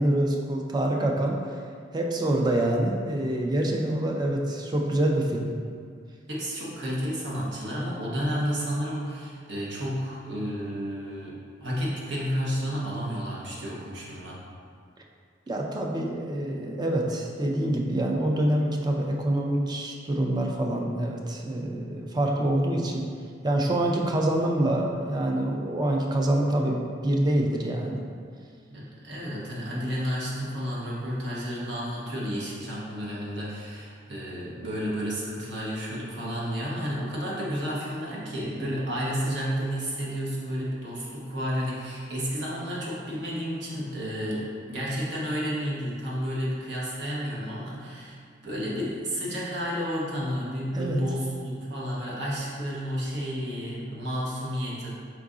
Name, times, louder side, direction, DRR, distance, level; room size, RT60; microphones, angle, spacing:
voice 1, 0.0-1.6 1.9-5.5 15.5-23.1 23.4-28.0 50.7-51.0, right 1 dB, 25° right, 1 dB, 0.4 m, -26 dB
voice 2, 6.3-14.4 28.7-48.2 48.4-54.9, equal, 65° right, -5 dB, 1.0 m, -31 dB
4.6 x 2.6 x 3.6 m, 2.1 s
head